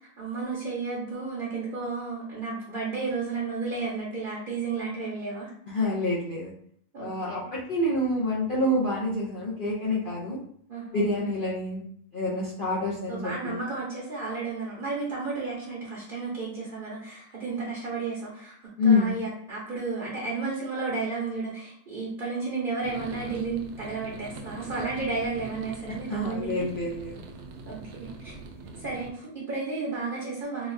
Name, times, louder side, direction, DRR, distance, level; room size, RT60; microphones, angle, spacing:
voice 1, 0.2-5.5 6.9-7.6 10.7-11.2 13.1-26.7 27.7-28.3 28.8-30.7, right 4 dB, 45° right, -5 dB, 0.7 m, -33 dB
voice 2, 5.7-6.5 7.0-10.4 10.9-11.8 12.1-13.6 18.8-19.1 26.1-27.2, left 2 dB, 75° left, -7 dB, 0.5 m, -27 dB
sound 1, 22.8-29.1, right 3 dB, 75° right, 1.1 m, -42 dB
3.9 x 2.3 x 2.5 m, 0.65 s
omnidirectional pair, 1.7 m